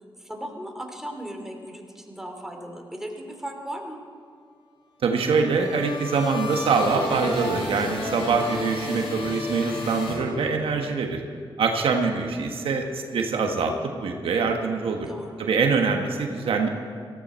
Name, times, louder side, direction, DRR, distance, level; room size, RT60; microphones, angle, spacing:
voice 1, 0.2-4.0 7.6-8.1 15.0-15.5, right 1 dB, 5° right, 2 dB, 2.7 m, -37 dB
voice 2, 5.0-11.2 11.6-13.7 14.0-15.1 15.4-16.7, right 4 dB, 80° right, 3 dB, 1.3 m, -24 dB
sound 1, 5.2-10.8, left 2 dB, 90° left, 4.2 m, -32 dB
18.0 x 14.5 x 4.4 m, 2.1 s
cardioid pair, 65°, 9 cm